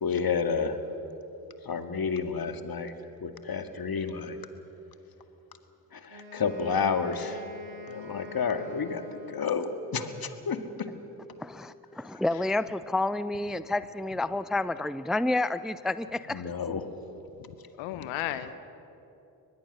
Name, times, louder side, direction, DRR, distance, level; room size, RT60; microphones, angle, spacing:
voice 1, 0.0-0.8 1.6-2.9 3.2-4.4 5.9-7.5 7.9-10.9 12.1-12.2 16.3-16.9, left 5 dB, 50° left, 8 dB, 2.0 m, -30 dB
Wind instrument woodwind instrument, 6.1-9.8, left 4 dB, 70° right, 5.0 m, -45 dB
voice 2, 11.4-16.4, left 2 dB, ahead, 15 dB, 0.5 m, -29 dB
voice 3, 17.4-18.6, left 12 dB, 85° left, 12 dB, 0.9 m, -35 dB
24.0 x 20.0 x 6.7 m, 3.0 s
hypercardioid pair, 40°, 48 cm